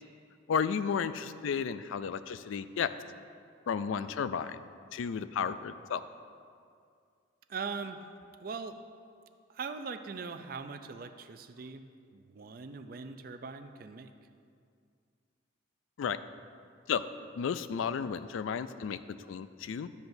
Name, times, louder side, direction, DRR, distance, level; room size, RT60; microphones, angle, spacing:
voice 1, 0.5-2.9 3.7-4.6 4.9-6.0 16.0-16.2 16.9-17.0 17.3-19.9, left 7 dB, 80° left, 13 dB, 0.3 m, -33 dB
voice 2, 7.5-8.0 8.4-8.8 9.5-11.9 12.1-14.1, right 5 dB, 45° right, 9 dB, 0.4 m, -41 dB
12.0 x 7.9 x 2.6 m, 2.3 s
head